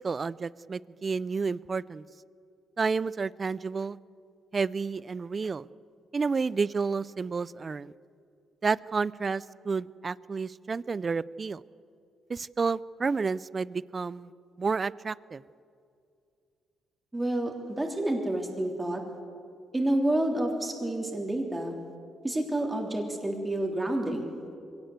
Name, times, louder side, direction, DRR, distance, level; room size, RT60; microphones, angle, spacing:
voice 1, 0.0-2.0 2.8-4.0 4.5-5.7 6.1-7.9 8.6-11.6 12.3-14.3 14.6-15.4, right 4 dB, 35° right, 20 dB, 0.5 m, -30 dB
voice 2, 17.1-19.0 19.7-21.8 22.2-24.3, right 1 dB, 15° right, 1 dB, 3.4 m, -29 dB
23.0 x 17.5 x 8.1 m, 2.4 s
cardioid pair, 100°, 0 cm